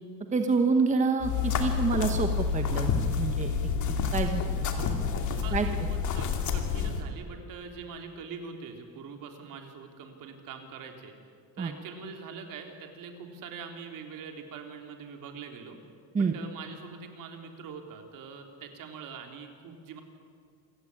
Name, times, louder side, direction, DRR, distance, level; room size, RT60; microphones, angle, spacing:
voice 1, 0.3-2.9 3.2-3.5 3.9-4.5 4.8-5.0 5.5-5.7 11.6-11.7 16.1-16.3, right 4 dB, 20° right, 5 dB, 1.1 m, -27 dB
sound 1, 1.2-7.0, left 6 dB, 55° left, 2.5 m, -29 dB
voice 2, 5.4-11.1 11.6-15.8 16.2-20.0, right 5 dB, 65° right, 4 dB, 3.5 m, -43 dB
27.0 x 16.0 x 9.9 m, 2.1 s
cardioid pair, 170°, 35 cm